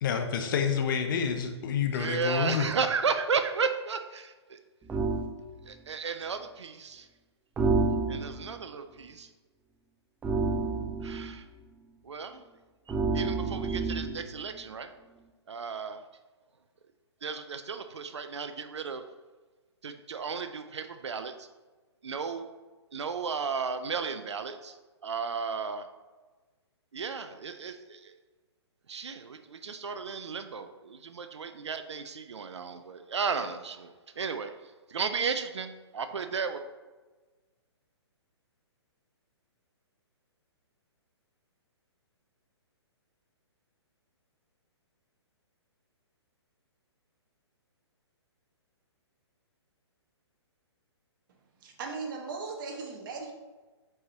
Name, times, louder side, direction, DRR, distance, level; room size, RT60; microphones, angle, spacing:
voice 1, 0.0-2.7, left 7 dB, 45° left, 5 dB, 0.8 m, -28 dB
voice 2, 1.9-4.6 5.7-7.1 8.1-9.3 11.0-11.4 12.0-12.4 13.1-14.9 15.5-16.0 17.2-19.0 19.8-21.5 22.0-22.5 22.9-24.8 25.0-25.8 26.9-28.1 28.9-34.5 34.9-36.6, right 5 dB, 75° right, 9 dB, 0.5 m, -34 dB
sound 1, 4.9-5.3 7.6-8.5 10.2-11.3 12.9-14.3, right 3 dB, 10° right, 0.4 m, -29 dB
voice 3, 51.6-53.3, right 4 dB, 45° right, 2 dB, 1.3 m, -38 dB
7.6 x 4.8 x 2.8 m, 1.3 s
hypercardioid pair, 130°, 15 cm